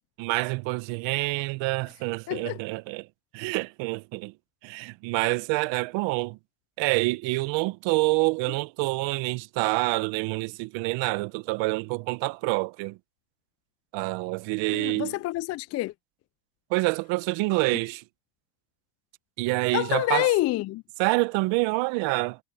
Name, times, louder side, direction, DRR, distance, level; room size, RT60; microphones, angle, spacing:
voice 1, 0.2-3.1 3.3-4.3 4.6-6.4 6.8-13.0 13.9-15.1 16.7-18.0 19.4-20.3 21.0-22.4, right 24 dB, 65° right, 1.5 m, -27 dB
voice 2, 2.3-2.6 14.7-15.9 19.7-20.8, left 17 dB, 35° left, 0.4 m, -27 dB
hypercardioid pair, 85°, 49 cm